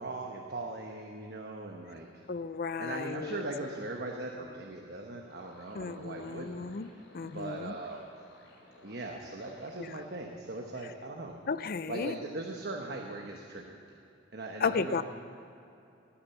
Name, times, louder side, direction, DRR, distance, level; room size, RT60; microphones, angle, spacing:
voice 1, 0.0-2.1 2.8-6.6 7.2-8.1 8.8-11.4 11.9-13.8 14.3-15.0, right 2 dB, 55° right, 1 dB, 1.1 m, -39 dB
voice 2, 2.3-3.4 5.7-7.8 9.8-9.9 11.5-12.2 14.6-15.0, left 5 dB, 50° left, 14 dB, 0.5 m, -34 dB
sound 1, 5.2-10.1, left 1 dB, 75° left, 2.9 m, -58 dB
19.5 x 8.8 x 7.1 m, 2.7 s
head